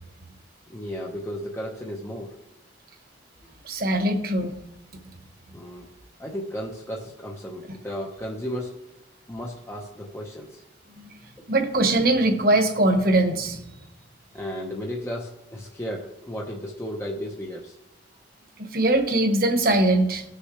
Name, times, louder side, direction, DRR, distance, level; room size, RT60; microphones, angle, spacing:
voice 1, 0.7-2.4 5.5-5.9 6.2-8.8 9.3-10.6 14.3-17.8, equal, 15° left, -1 dB, 0.8 m, -34 dB
voice 2, 3.6-4.5 11.0-11.1 11.5-13.6 18.6-20.2, right 1 dB, 50° right, 4 dB, 1.4 m, -21 dB
18.5 x 6.5 x 3.2 m, 0.92 s
head